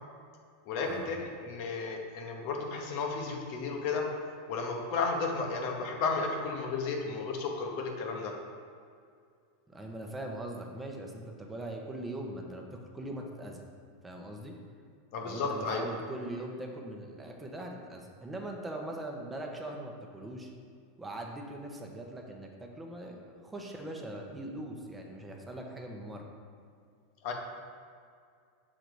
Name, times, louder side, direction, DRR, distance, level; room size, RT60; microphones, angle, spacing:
voice 1, 0.7-4.1 4.5-8.3 15.1-15.9 27.2-27.3, left 4 dB, 60° left, 2 dB, 0.9 m, -33 dB
voice 2, 9.7-13.6 14.0-14.6 15.2-20.5 21.0-26.3, right 1 dB, 15° right, 1 dB, 0.9 m, -41 dB
6.3 x 3.9 x 4.7 m, 2.3 s
hypercardioid pair, 95°, 0 cm